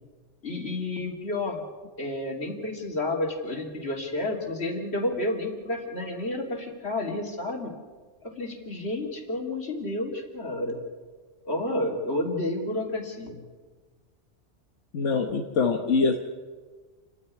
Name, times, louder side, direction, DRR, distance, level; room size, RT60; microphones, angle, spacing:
voice 1, 0.4-1.6 2.0-7.7 8.2-10.8 11.4-13.4, left 2 dB, 60° left, 1 dB, 3.2 m, -30 dB
voice 2, 14.9-16.2, left 4 dB, 85° left, 3 dB, 1.5 m, -24 dB
29.0 x 10.0 x 9.7 m, 1.4 s
omnidirectional pair, 1.2 m